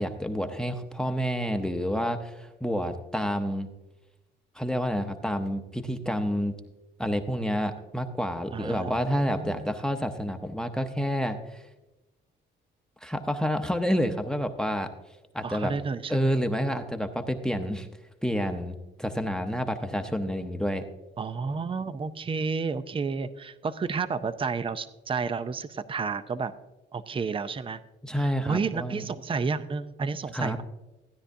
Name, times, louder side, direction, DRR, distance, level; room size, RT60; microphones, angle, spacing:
voice 1, 0.0-3.7 4.6-6.6 7.0-11.6 13.0-14.9 15.3-15.7 16.1-17.9 18.2-20.9 28.0-29.0 30.3-30.6, equal, 5° left, 7 dB, 0.8 m, -29 dB
voice 2, 8.5-9.7 15.4-16.4 21.2-26.5 26.9-27.8 28.1-30.6, right 5 dB, 25° right, 13 dB, 0.6 m, -31 dB
15.5 x 9.9 x 2.7 m, 1.0 s
cardioid pair, 90°, 20 cm